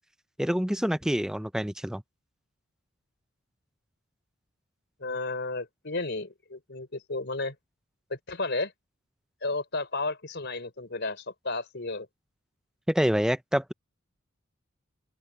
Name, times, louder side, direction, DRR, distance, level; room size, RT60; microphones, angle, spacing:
voice 1, 0.4-2.0 12.9-13.7, equal, 5° right, 0.7 m, -26 dB
voice 2, 5.0-7.5 8.1-8.7 9.4-12.1, left 3 dB, 55° left, 4.6 m, -33 dB
open air
head